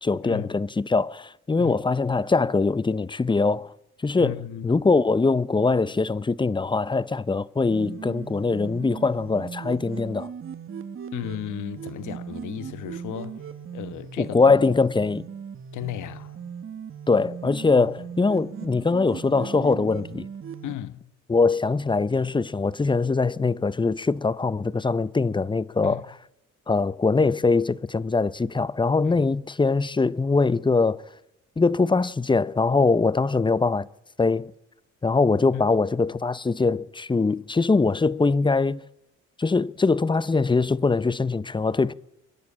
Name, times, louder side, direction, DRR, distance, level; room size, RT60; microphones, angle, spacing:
voice 1, 0.0-3.7 4.0-4.3 4.6-10.3 14.2-15.2 17.1-20.3 21.3-26.0 26.7-31.0 31.6-33.9 34.2-34.5 35.0-38.8 39.4-41.9, left 3 dB, 15° left, 0.7 m, -22 dB
voice 2, 4.2-4.7 11.1-13.4 13.7-14.4 15.7-16.4 17.8-17.9 20.6-21.1 25.8-26.0 29.0-29.2 35.5-35.6, left 12 dB, 80° left, 1.2 m, -35 dB
sound 1, 7.7-20.7, right 7 dB, 45° right, 1.7 m, -38 dB
27.5 x 11.0 x 8.7 m
cardioid pair, 90°, 30 cm